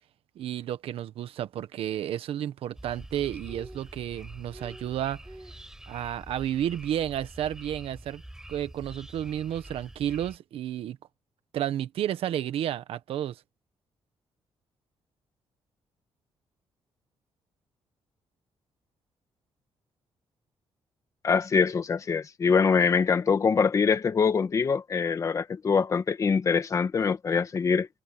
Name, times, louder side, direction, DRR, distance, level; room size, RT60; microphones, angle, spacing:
voice 1, 0.3-5.2 5.9-8.2 8.5-11.0 11.5-13.4, right 11 dB, 80° right, 1.4 m, -31 dB
sound 1, 2.7-10.4, right 1 dB, 5° right, 4.7 m, -45 dB
voice 2, 21.2-27.9, left 5 dB, 35° left, 1.5 m, -24 dB
cardioid pair, 155°, 10 cm